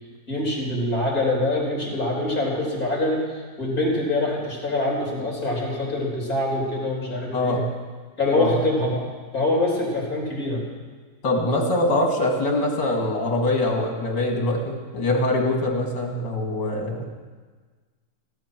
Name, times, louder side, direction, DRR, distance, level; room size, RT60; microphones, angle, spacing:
voice 1, 0.3-7.6 8.2-9.0 9.3-10.6, left 2 dB, 50° left, -2 dB, 4.1 m, -24 dB
voice 2, 11.2-17.0, left 1 dB, 70° left, 1 dB, 3.0 m, -23 dB
16.5 x 12.5 x 6.0 m, 1.5 s
omnidirectional pair, 2.0 m